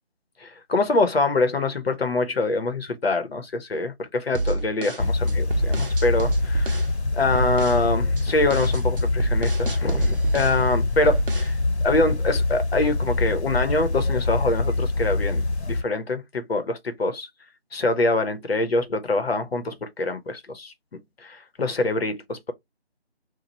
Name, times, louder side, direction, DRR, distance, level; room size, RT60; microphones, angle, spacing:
voice 1, 0.4-6.8 7.1-17.3 17.7-22.5, left 2 dB, 65° left, 0.9 m, -25 dB
sound 1, 4.3-6.9 7.3-7.8 8.2-10.6 11.0-11.6, right 2 dB, 55° right, 0.7 m, -28 dB
sound 2, 5.0-15.8, left 2 dB, 85° left, 1.1 m, -24 dB
3.0 x 2.3 x 4.2 m
figure-of-eight pair, 170°, 33 cm